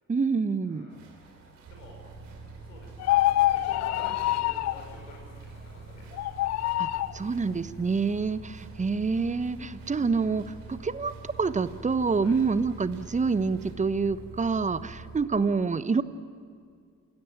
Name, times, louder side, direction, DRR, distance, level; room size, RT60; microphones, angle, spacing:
voice 1, 0.1-0.9 6.8-6.9 7.1-16.0, right 4 dB, 20° right, 15 dB, 1.0 m, -27 dB
voice 2, 0.6-1.0 1.7-2.0 2.6-6.0 12.2-12.3, left 3 dB, 75° left, 0 dB, 6.1 m, -49 dB
sound 1, 0.9-13.8, right 4 dB, 75° right, 3.3 m, -55 dB
sound 2, 1.6-15.2, right 3 dB, 50° right, 4.8 m, -45 dB
sound 3, 3.0-4.8 6.1-7.2, left 15 dB, 45° left, 0.6 m, -25 dB
29.5 x 17.0 x 9.0 m, 2.2 s
figure-of-eight pair, 50°, 38 cm